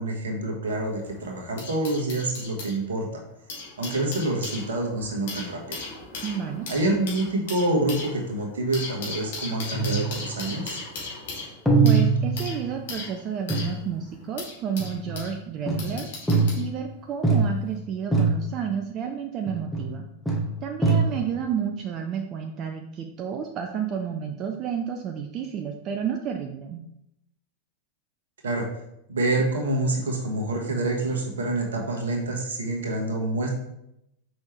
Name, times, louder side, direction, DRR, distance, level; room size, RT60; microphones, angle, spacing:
voice 1, 0.0-3.1 3.8-5.8 6.7-10.8 28.4-28.7 29.1-33.5, right 2 dB, 65° right, 0 dB, 1.6 m, -27 dB
sound 1, 0.6-2.7 3.3-15.3 15.8-16.7 17.5-17.7, left 3 dB, 55° left, 2.0 m, -38 dB
voice 2, 6.2-6.7 11.8-20.1 20.6-26.8, right 7 dB, 35° right, 4 dB, 0.5 m, -31 dB
sound 2, 9.7-10.6 11.7-12.9 13.5-13.8 14.8-15.3 15.7-16.8 17.2-17.8 18.1-18.7 19.5-20.0 20.3-21.4, right 4 dB, ahead, 1.4 m, -23 dB
6.1 x 5.3 x 3.3 m, 0.81 s
figure-of-eight pair, 90°, 0 cm